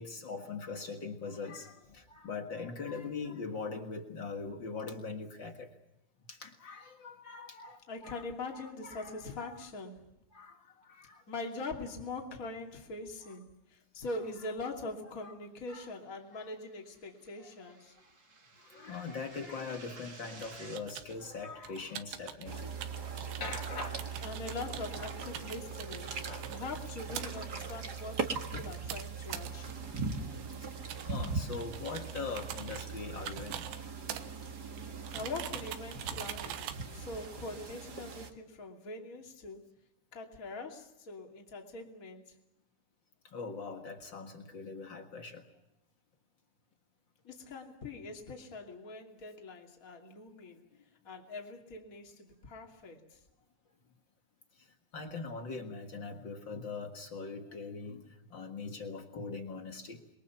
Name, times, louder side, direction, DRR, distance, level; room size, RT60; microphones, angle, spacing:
voice 1, 0.0-5.7 6.3-8.2 8.5-9.1 9.4-9.6 10.3-11.2 15.2-15.3 15.7-15.8 16.3-16.4 18.7-22.7 23.4-24.0 26.2-26.4 31.1-33.6 43.3-45.4 54.9-58.0 58.3-60.0, left 4 dB, 70° left, 4 dB, 1.1 m, -41 dB
voice 2, 7.9-10.1 11.3-18.0 24.2-26.2 26.5-30.0 35.1-39.6 40.1-42.3 47.2-50.6 51.0-53.2, left 3 dB, 25° left, 2 dB, 2.4 m, -43 dB
sound 1, 16.3-20.8, right 3 dB, 35° right, 1.6 m, -54 dB
sound 2, 20.4-37.9, right 11 dB, 85° right, 3.4 m, -45 dB
sound 3, 22.4-38.3, right 4 dB, 55° right, 1.1 m, -40 dB
28.0 x 22.5 x 6.0 m, 0.85 s
omnidirectional pair, 4.9 m